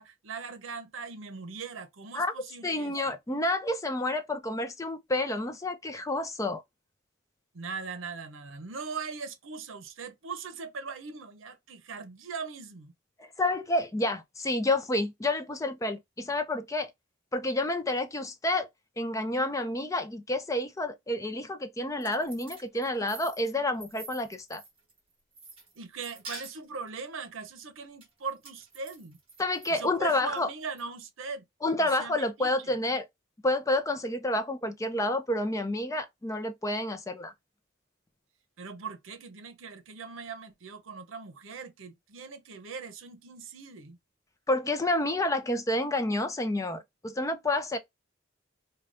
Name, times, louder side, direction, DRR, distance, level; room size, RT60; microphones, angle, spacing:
voice 1, 0.0-3.2 7.5-12.9 25.8-29.2 29.7-31.5 31.8-32.7 38.6-44.0, right 5 dB, 80° right, 0.7 m, -40 dB
voice 2, 2.6-6.6 13.2-16.9 17.3-18.7 19.0-24.6 29.4-30.5 31.6-33.1 33.4-37.3 44.5-47.8, left 1 dB, 15° left, 0.5 m, -29 dB
sound 1, 21.8-25.0 25.3-26.9 28.0-29.7 30.1-30.8, right 3 dB, 30° right, 1.7 m, -47 dB
4.9 x 2.3 x 2.5 m
head